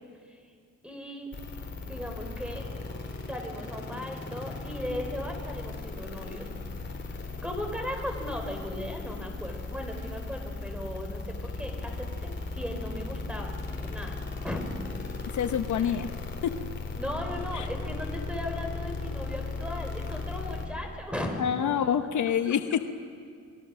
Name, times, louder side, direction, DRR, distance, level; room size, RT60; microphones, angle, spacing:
voice 1, 0.8-1.3 1.9-2.6 3.2-6.5 7.4-14.6 15.8-15.9 16.9-21.8, left 1 dB, 5° right, 4 dB, 4.1 m, -37 dB
sound 1, 1.3-20.7, left 3 dB, 35° left, 3.4 m, -37 dB
voice 2, 15.3-16.1 16.4-16.5 17.5-17.7 21.4-22.9, left 8 dB, 70° left, 8 dB, 1.0 m, -27 dB
27.5 x 21.0 x 6.3 m, 2.2 s
cardioid pair, 115°, 31 cm